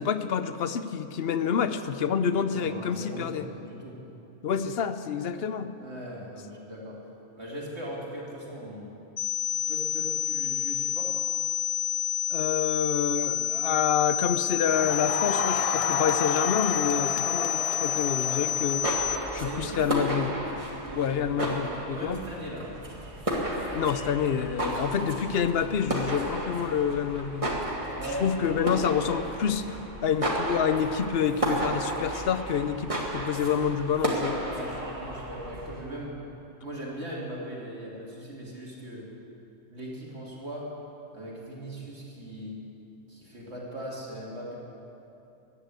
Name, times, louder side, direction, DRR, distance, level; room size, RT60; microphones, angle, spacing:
voice 1, 0.0-3.5 4.4-5.7 12.3-18.9 19.3-20.3 21.0-22.2 23.7-27.5 28.2-34.4, left 7 dB, 60° left, 11 dB, 0.8 m, -28 dB
voice 2, 2.5-4.0 4.5-4.6 5.8-7.0 7.4-9.0 9.5-11.2 18.2-18.4 19.4-20.2 20.9-21.2 21.9-22.7 27.9-28.6 34.5-36.2 36.6-39.1 39.7-40.7 41.1-42.6 43.1-44.6, equal, 65° right, -4 dB, 2.8 m, -39 dB
sound 1, 9.2-19.2, left 11 dB, 80° left, 1.6 m, -29 dB
Crowd, 14.6-19.4, left 5 dB, 40° left, 0.6 m, -32 dB
sound 2, 18.6-35.9, right 1 dB, 30° right, 2.0 m, -33 dB
14.5 x 10.0 x 8.2 m, 2.9 s
omnidirectional pair, 1.2 m